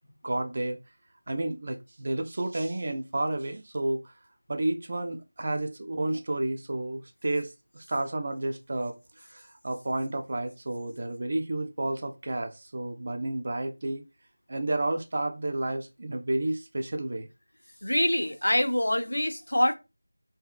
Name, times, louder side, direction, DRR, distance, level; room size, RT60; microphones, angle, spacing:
voice 1, 0.2-0.8 1.3-4.0 4.5-9.0 9.3-14.0 14.5-17.3, right 2 dB, 35° right, 0.4 m, -31 dB
voice 2, 17.8-19.7, left 1 dB, 65° left, 0.5 m, -25 dB
2.6 x 2.3 x 2.3 m
figure-of-eight pair, 170°, 0 cm